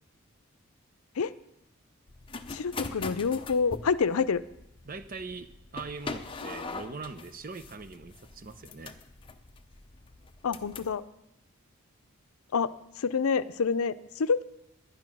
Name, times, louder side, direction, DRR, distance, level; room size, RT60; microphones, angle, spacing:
sound 1, 2.1-11.0, left 3 dB, 25° left, 0.6 m, -42 dB
voice 1, 2.5-4.4 10.4-11.0 12.5-14.4, left 5 dB, 90° left, 13 dB, 0.5 m, -27 dB
voice 2, 4.9-9.0, right 4 dB, 40° right, 11 dB, 0.7 m, -41 dB
10.5 x 10.5 x 6.2 m, 0.85 s
head